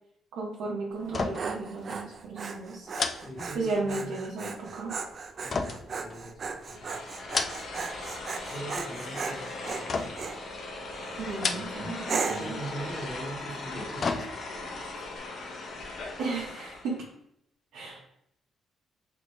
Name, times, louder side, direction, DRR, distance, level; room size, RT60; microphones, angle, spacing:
voice 1, 0.3-2.9 3.5-4.9 11.2-12.6 16.2-17.0 17.7-18.1, right 3 dB, 80° right, -4 dB, 0.8 m, -34 dB
Dog, 1.0-10.4 11.0-11.4 12.1-12.6, right 4 dB, 45° right, 0.4 m, -37 dB
sound 1, 1.1-1.6 1.9-2.1 2.9-4.0 5.5-6.6 7.1-7.9 8.2-8.8 9.9-10.4 11.3-12.0 12.3-12.4 13.5-14.7 15.1-15.2, left 4 dB, 45° left, 0.3 m, -33 dB
voice 2, 3.2-4.1 5.4-7.1 8.5-10.3 12.2-14.9, right 1 dB, 15° left, -3 dB, 1.3 m, -42 dB
sound 2, 6.7-17.0, left 2 dB, 60° left, 0.7 m, -39 dB
3.0 x 2.6 x 3.0 m, 0.74 s
cardioid pair, 90°, 0 cm